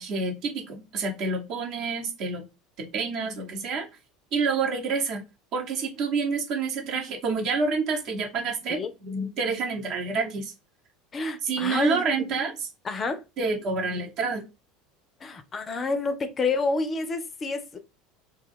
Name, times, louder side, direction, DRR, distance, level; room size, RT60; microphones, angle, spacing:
voice 1, 0.0-2.4 2.8-3.9 4.3-5.2 5.5-10.5 11.4-12.7 13.4-14.4, right 4 dB, 55° right, 0.9 m, -28 dB
voice 2, 11.1-12.1 12.8-13.2 15.2-17.8, left 3 dB, 30° left, 0.4 m, -28 dB
2.2 x 2.2 x 3.4 m
hypercardioid pair, 80°, 0 cm